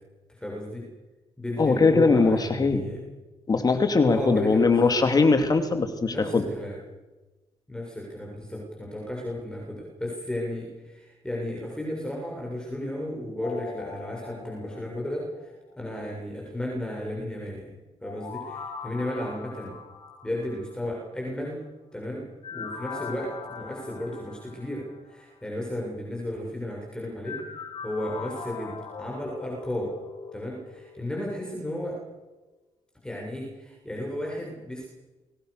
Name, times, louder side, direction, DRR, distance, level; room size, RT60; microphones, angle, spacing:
voice 1, 0.3-0.9 1.4-3.0 4.0-4.9 6.1-6.8 7.7-17.7 18.0-19.8 20.2-21.6 21.9-27.4 27.8-29.9 30.3-32.0 33.0-34.9, left 1 dB, 5° left, -2 dB, 7.0 m, -34 dB
voice 2, 1.6-2.9 3.5-6.4, left 4 dB, 35° left, 7 dB, 2.8 m, -21 dB
sound 1, 13.4-15.7 18.0-21.0 22.4-25.2 27.2-31.7 32.1-32.2, left 5 dB, 65° left, 4.5 m, -41 dB
29.0 x 22.5 x 6.7 m, 1.2 s
cardioid pair, 115°, 11 cm